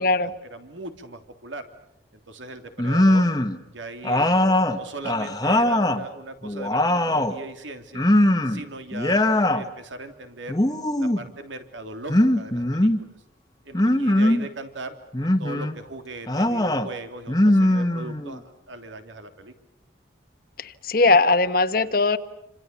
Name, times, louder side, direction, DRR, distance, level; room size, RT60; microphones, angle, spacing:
voice 1, 0.4-1.7 2.1-3.3 3.7-8.1 8.4-10.6 11.0-13.1 13.6-14.9 15.2-19.5, right 2 dB, 85° right, 7 dB, 3.2 m, -39 dB
sound 1, 2.8-3.6 4.0-6.0 6.4-7.4 7.9-8.6 8.9-9.6 10.5-11.3 12.1-13.0 13.7-14.5 15.1-15.7 16.3-16.9 17.3-18.4, left 1 dB, 20° left, 1.3 m, -21 dB
voice 2, 20.6-22.2, left 3 dB, 50° left, 12 dB, 1.3 m, -20 dB
28.0 x 26.5 x 7.0 m, 0.84 s
head